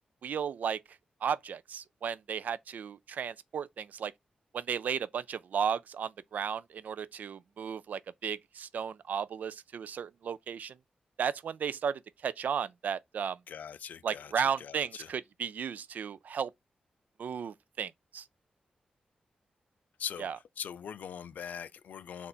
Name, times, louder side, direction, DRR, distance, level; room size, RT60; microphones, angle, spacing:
voice 1, 0.2-0.8 1.2-4.1 4.5-10.8 11.2-13.4 14.0-16.5 17.2-18.3 20.2-20.4, right 7 dB, 75° right, 0.3 m, -34 dB
voice 2, 13.5-14.3 14.6-15.1 20.0-20.3 20.6-22.3, left 8 dB, 85° left, 0.3 m, -41 dB
4.0 x 2.4 x 4.1 m
cardioid pair, 85°, 3 cm